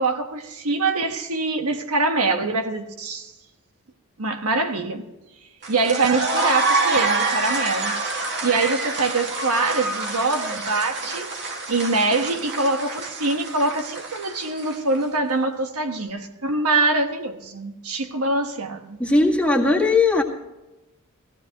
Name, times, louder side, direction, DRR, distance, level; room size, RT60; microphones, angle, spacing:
voice 1, 0.0-3.3 4.2-5.0 5.7-8.0 8.4-11.3 11.7-19.0, right 3 dB, 80° right, 1.3 m, -24 dB
sound 1, 5.6-15.0, right 3 dB, 55° right, 2.0 m, -26 dB
voice 2, 19.0-20.2, left 3 dB, 5° left, 1.9 m, -18 dB
18.0 x 15.5 x 3.0 m
head